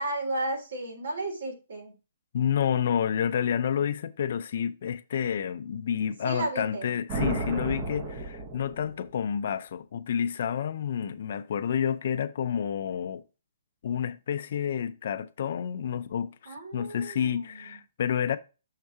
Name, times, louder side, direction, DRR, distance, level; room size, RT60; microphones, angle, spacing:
voice 1, 0.0-1.9 6.2-6.9 16.4-17.6, right 2 dB, 70° right, 3.3 m, -33 dB
voice 2, 2.3-13.2 13.8-18.4, left 8 dB, 45° left, 0.4 m, -29 dB
sound 1, 7.1-9.2, right 2 dB, 20° right, 0.7 m, -33 dB
6.5 x 3.6 x 4.6 m
hypercardioid pair, 180°, 0 cm